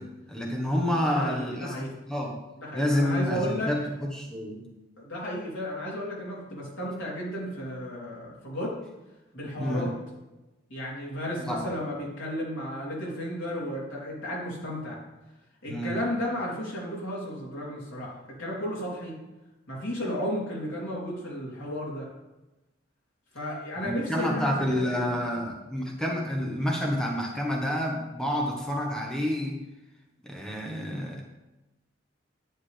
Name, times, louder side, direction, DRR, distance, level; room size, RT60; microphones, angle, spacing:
voice 1, 0.0-2.4 2.7-3.8 4.1-4.7 9.6-9.9 11.4-11.7 15.7-16.0 23.8-29.6 30.2-31.2, equal, 5° left, -1 dB, 1.2 m, -29 dB
voice 2, 1.1-1.9 2.6-3.7 5.0-8.8 9.3-9.9 10.7-15.0 15.6-19.1 19.7-22.1 23.3-25.1, equal, 85° left, -5 dB, 3.6 m, -33 dB
10.0 x 9.5 x 3.4 m, 1.0 s
head